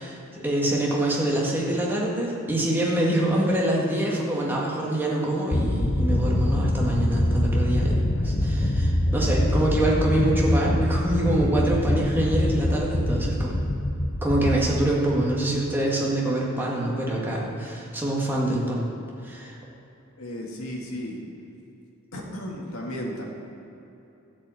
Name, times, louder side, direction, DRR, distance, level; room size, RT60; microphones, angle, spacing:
voice 1, 0.0-13.5 14.2-18.8 19.2-19.6, right 1 dB, 10° right, -4 dB, 1.9 m, -25 dB
sound 1, 5.5-15.6, left 1 dB, 35° left, 0.6 m, -24 dB
voice 2, 20.2-21.2 22.1-23.2, equal, 85° left, -2 dB, 1.9 m, -34 dB
12.0 x 5.4 x 8.3 m, 2.9 s
head